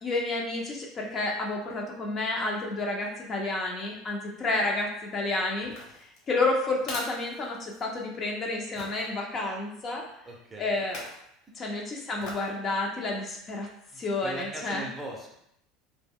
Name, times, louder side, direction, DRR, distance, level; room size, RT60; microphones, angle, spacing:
voice 1, 0.0-5.7 6.3-10.1 10.6-11.0 11.6-13.7 14.0-14.9, left 2 dB, 30° left, 0 dB, 0.5 m, -30 dB
sound 1, 5.6-8.1 8.8-9.1 10.8-11.3 12.2-12.6 13.0-13.1, left 2 dB, 55° left, 1.1 m, -42 dB
voice 2, 10.3-10.8 13.9-15.3, right 2 dB, 15° right, -1 dB, 0.6 m, -39 dB
2.2 x 2.1 x 3.5 m, 0.75 s
supercardioid pair, 125°, 0 cm